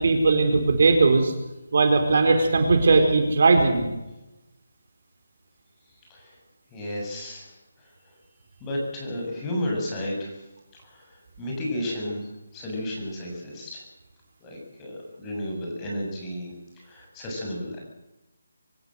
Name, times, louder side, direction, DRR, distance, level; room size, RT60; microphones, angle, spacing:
voice 1, 0.0-1.3 1.7-3.9, right 3 dB, 55° right, 5 dB, 4.3 m, -19 dB
voice 2, 6.7-7.5 8.0-8.2 8.6-10.4 10.7-12.2 12.5-13.8 14.4-17.8, left 1 dB, 15° left, -1 dB, 7.2 m, -33 dB
25.0 x 15.5 x 7.8 m, 0.98 s
figure-of-eight pair, 165°, 0 cm